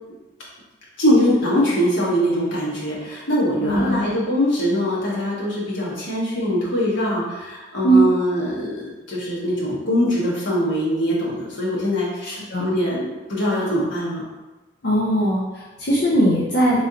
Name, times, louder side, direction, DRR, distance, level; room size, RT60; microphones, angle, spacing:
voice 1, 1.0-14.2, equal, 80° left, -6 dB, 1.1 m, -22 dB
voice 2, 3.6-4.1 7.8-8.1 12.5-12.8 14.8-16.8, right 1 dB, 60° left, -6 dB, 0.6 m, -19 dB
3.7 x 3.1 x 2.8 m, 1.1 s
head